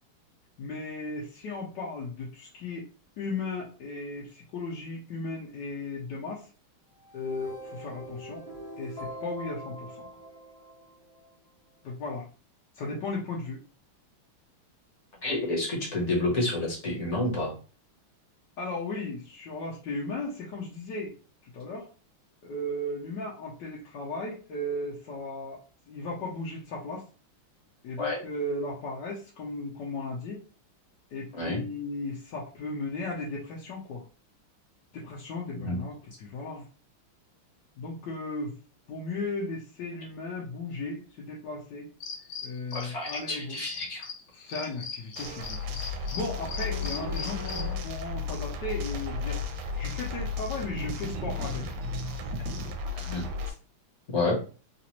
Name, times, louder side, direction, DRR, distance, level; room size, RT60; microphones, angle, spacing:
voice 1, 0.6-2.9 3.2-6.5 7.1-8.5 8.8-10.1 11.8-12.2 12.7-13.6 18.6-21.1 21.5-21.9 22.5-25.6 25.9-27.1 27.8-30.4 31.1-34.0 34.9-36.6 37.8-38.5 38.9-41.9 42.4-43.6 44.3-45.6 45.9-49.4 49.8-51.7, left 2 dB, 65° left, -4 dB, 1.3 m, -36 dB
sound 1, 7.0-11.3, equal, 20° left, 0.7 m, -43 dB
voice 2, 15.2-17.5 28.0-28.2 31.3-31.6 35.5-35.8 42.7-44.1 52.9-53.3 54.1-54.4, left 2 dB, 40° left, -2 dB, 1.2 m, -29 dB
sound 2, 42.0-43.3 43.7-47.8, left 5 dB, 80° left, 1.7 m, -39 dB
sound 3, 45.2-53.5, left 3 dB, 85° right, 1.5 m, -34 dB
4.0 x 2.5 x 2.9 m, 0.36 s
omnidirectional pair, 2.3 m